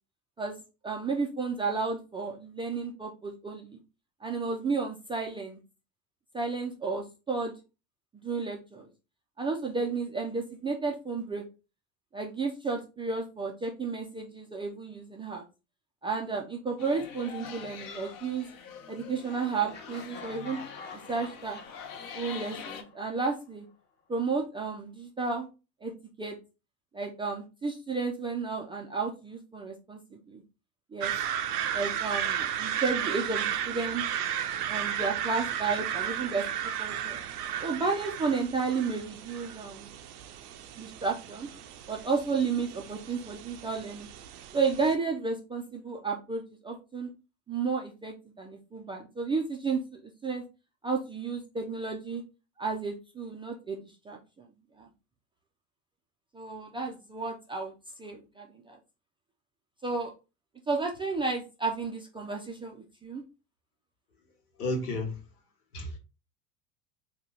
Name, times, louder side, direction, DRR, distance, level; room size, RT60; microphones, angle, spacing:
voice 1, 0.8-3.8 4.2-5.6 6.3-7.5 8.2-8.9 9.4-11.4 12.1-15.4 16.0-18.5 18.9-20.6 21.1-21.6 22.1-23.7 24.1-25.5 25.8-25.9 26.2-26.4 26.9-30.4 30.9-31.1 31.7-34.0 34.7-36.5 36.8-37.2 37.6-39.9 40.8-41.5 41.9-44.1 44.5-47.1 47.5-50.4 50.8-52.2 52.6-54.5 54.8-54.9 56.3-57.7 58.0-58.8 59.8-60.1 60.7-63.2, right 4 dB, 15° right, 0.3 m, -32 dB
sound 1, 16.8-22.8, left 7 dB, 45° left, 0.8 m, -44 dB
Laughter, 19.7-23.5, left 4 dB, 25° left, 0.9 m, -47 dB
sound 2, 31.0-45.0, right 10 dB, 85° right, 0.5 m, -34 dB
voice 2, 64.6-65.2 65.7-66.0, left 1 dB, 80° left, 1.3 m, -32 dB
2.9 x 2.3 x 3.8 m
hypercardioid pair, 80°, 45 cm